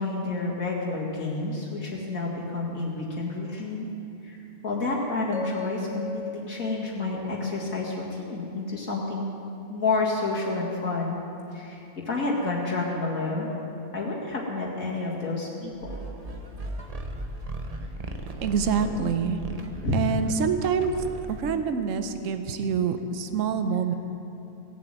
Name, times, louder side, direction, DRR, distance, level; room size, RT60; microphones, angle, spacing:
voice 1, 0.0-3.9 4.2-4.4 4.6-9.3 9.7-11.2 11.5-11.8 12.1-13.5 13.9-16.0 18.7-18.8 19.8-20.3, left 3 dB, 70° left, -4 dB, 2.6 m, -29 dB
sound 1, 5.3-9.4, left 3 dB, 50° left, 1.4 m, -39 dB
sound 2, 15.8-21.6, right 1 dB, 30° right, 0.8 m, -37 dB
voice 2, 18.4-19.4 19.9-20.9 21.3-23.9, right 6 dB, 65° right, 8 dB, 1.2 m, -26 dB
17.0 x 7.7 x 9.0 m, 2.8 s
omnidirectional pair, 1.5 m